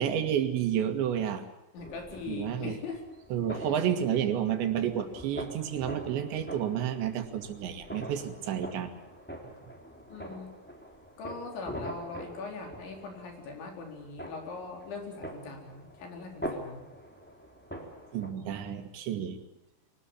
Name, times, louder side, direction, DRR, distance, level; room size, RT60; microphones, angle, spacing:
voice 1, 0.0-1.4 2.3-2.8 3.3-8.9 18.1-19.4, right 9 dB, 75° right, 7 dB, 4.1 m, -30 dB
voice 2, 1.7-3.0 3.6-3.7 10.1-10.5 11.2-16.8, left 4 dB, 75° left, 2 dB, 6.4 m, -41 dB
sound 1, 1.8-18.3, equal, 5° left, 2.6 m, -44 dB
24.5 x 19.0 x 8.6 m, 0.95 s
omnidirectional pair, 5.3 m